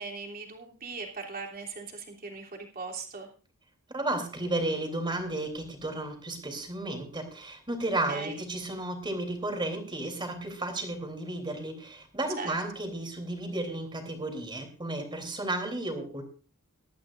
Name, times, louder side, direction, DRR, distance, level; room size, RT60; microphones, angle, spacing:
voice 1, 0.0-3.3 8.1-8.4 12.4-12.5, right 4 dB, 40° right, 0 dB, 3.1 m, -39 dB
voice 2, 3.9-16.2, right 2 dB, 20° right, 5 dB, 3.3 m, -33 dB
20.0 x 13.0 x 2.5 m, 0.37 s
head